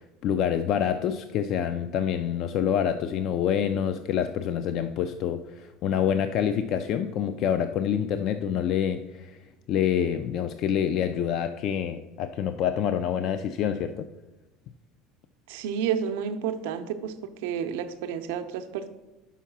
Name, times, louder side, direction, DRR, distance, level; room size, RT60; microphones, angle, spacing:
voice 1, 0.0-9.4 9.7-14.1, left 9 dB, 50° left, 9 dB, 0.3 m, -27 dB
voice 2, 15.5-18.9, right 8 dB, 85° right, 8 dB, 0.6 m, -30 dB
5.6 x 4.7 x 5.9 m, 1.0 s
cardioid pair, 145°, 0 cm